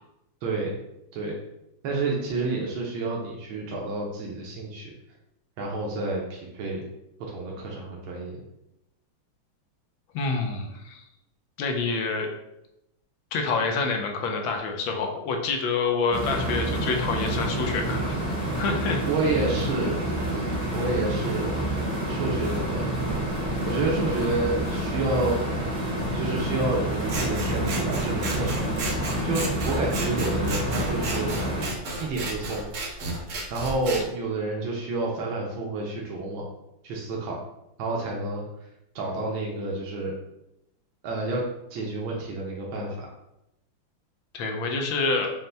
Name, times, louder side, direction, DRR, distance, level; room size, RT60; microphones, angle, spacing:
voice 1, 0.4-0.7 1.1-1.3 1.8-4.9 5.6-6.8 7.2-8.4 19.0-20.0 20.3-21.6 22.1-23.0 23.7-25.7 26.1-28.7 29.2-31.3 32.0-32.7 33.5-36.4 36.8-37.4 37.8-38.5 38.9-40.1 41.0-41.4 41.7-43.1, right 2 dB, 85° right, -2 dB, 1.5 m, -29 dB
voice 2, 10.1-11.0 11.6-12.3 13.3-18.2 18.5-19.0 44.3-45.3, left 4 dB, 85° left, 3 dB, 1.4 m, -27 dB
sound 1, 16.1-31.7, right 1 dB, 35° left, 0.7 m, -28 dB
Scissors, 27.1-34.0, right 2 dB, 65° right, 0.8 m, -33 dB
5.4 x 2.1 x 3.3 m, 0.86 s
omnidirectional pair, 2.2 m